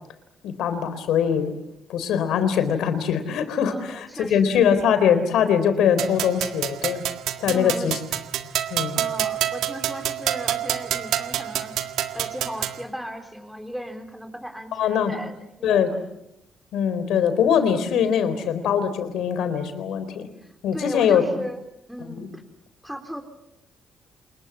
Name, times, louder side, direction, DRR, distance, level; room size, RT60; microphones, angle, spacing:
voice 1, 0.4-1.5 1.9-7.0 7.4-8.0 8.7-9.0 14.8-15.1 15.6-15.9 16.7-20.3 20.6-21.2 22.0-22.3, left 8 dB, 80° left, 11 dB, 3.9 m, -22 dB
voice 2, 3.7-4.6 7.5-7.9 9.0-15.7 20.4-21.6 21.9-22.4 22.8-23.2, equal, ahead, 6 dB, 3.8 m, -36 dB
sound 1, 6.0-12.8, right 12 dB, 85° right, 1.7 m, -28 dB
28.0 x 22.0 x 8.5 m, 0.86 s
cardioid pair, 90°, 0 cm